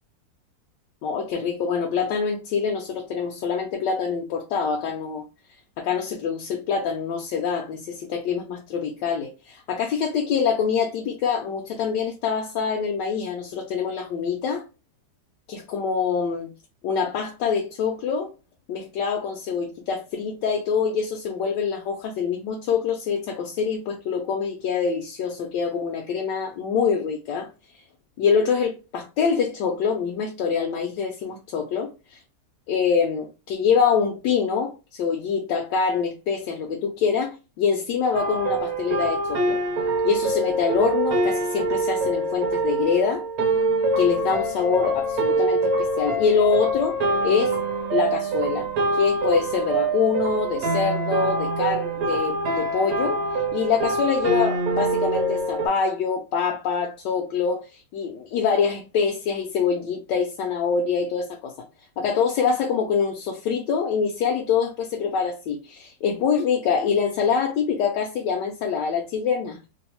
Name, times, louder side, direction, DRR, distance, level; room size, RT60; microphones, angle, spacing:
voice 1, 1.0-5.2 5.8-14.6 15.5-16.5 16.8-18.3 18.7-27.5 28.2-32.2 32.7-39.6 40.0-43.2 44.0-47.0 47.2-47.6 47.9-53.2 53.5-61.5 62.0-69.6, left 6 dB, 80° left, 1.2 m, -25 dB
sound 1, 38.1-55.7, right 2 dB, 65° right, 1.1 m, -25 dB
3.1 x 2.0 x 2.8 m
omnidirectional pair, 1.9 m